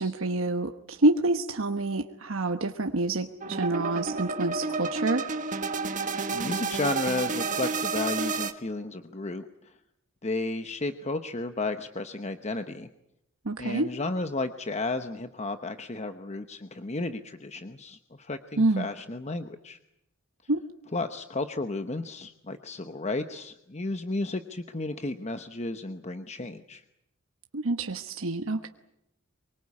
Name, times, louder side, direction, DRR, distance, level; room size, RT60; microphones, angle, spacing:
voice 1, 0.0-5.3 13.4-13.9 18.6-18.9 20.5-20.6 27.5-28.7, right 2 dB, 75° right, 6 dB, 1.2 m, -27 dB
sound 1, 3.4-8.5, right 4 dB, 40° right, 1.6 m, -30 dB
voice 2, 6.0-9.7 10.2-12.9 13.6-19.8 20.9-26.8, left 2 dB, 35° left, 8 dB, 1.0 m, -33 dB
24.5 x 23.5 x 8.5 m, 0.83 s
head